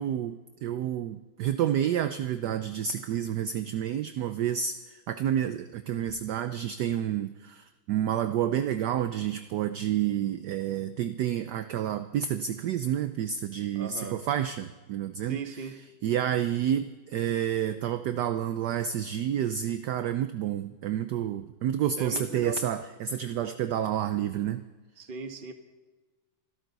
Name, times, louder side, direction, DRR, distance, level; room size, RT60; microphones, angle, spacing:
voice 1, 0.0-15.4 16.0-24.6, right 10 dB, 70° right, 10 dB, 1.0 m, -29 dB
voice 2, 13.7-14.2 15.2-15.8 21.9-22.6 25.0-25.5, right 4 dB, 30° right, 6 dB, 1.1 m, -37 dB
25.5 x 12.5 x 4.0 m, 1.3 s
omnidirectional pair, 2.2 m